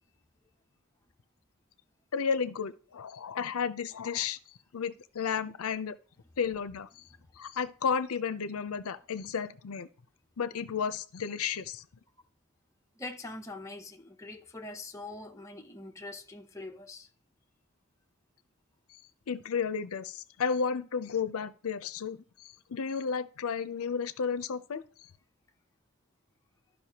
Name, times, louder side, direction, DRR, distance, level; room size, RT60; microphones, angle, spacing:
voice 1, 2.1-6.0 6.4-7.1 7.4-9.9 10.4-11.8 18.9-19.0 19.3-25.1, left 6 dB, 85° left, 0.5 m, -33 dB
voice 2, 13.0-17.1, left 2 dB, 15° left, 0.6 m, -43 dB
12.5 x 5.4 x 2.9 m
head